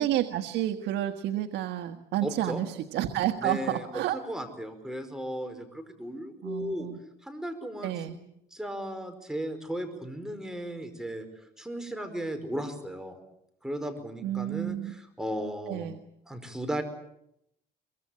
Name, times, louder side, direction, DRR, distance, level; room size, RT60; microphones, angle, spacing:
voice 1, 0.0-4.2 6.4-7.0 7.8-8.2 14.2-14.9 15.7-16.0, right 12 dB, 80° right, 7 dB, 1.5 m, -30 dB
voice 2, 2.2-2.6 3.4-3.9 4.1-6.9 7.2-8.2 8.5-11.2 11.6-13.2 13.6-15.9 16.3-16.8, equal, 5° right, 6 dB, 4.8 m, -36 dB
23.5 x 23.0 x 8.7 m, 0.78 s
cardioid pair, 110°, 17 cm